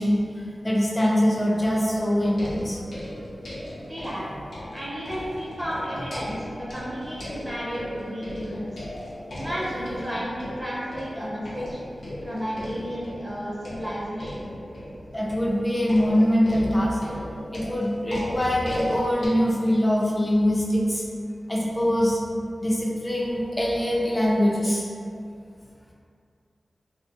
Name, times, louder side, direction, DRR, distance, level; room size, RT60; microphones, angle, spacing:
voice 1, 0.0-2.8 4.4-4.5 5.9-6.1 9.3-9.5 15.1-17.1 17.5-21.0 21.5-22.2 22.6-24.9, equal, 25° left, -4 dB, 0.4 m, -23 dB
sound 1, 2.2-19.3, left 1 dB, 85° left, 0.6 m, -38 dB
voice 2, 3.9-4.3 4.7-8.6 9.3-11.8 12.2-14.5, equal, 15° right, -7 dB, 0.6 m, -32 dB
2.5 x 2.1 x 2.8 m, 2.4 s
wide cardioid pair, 60°, 0 cm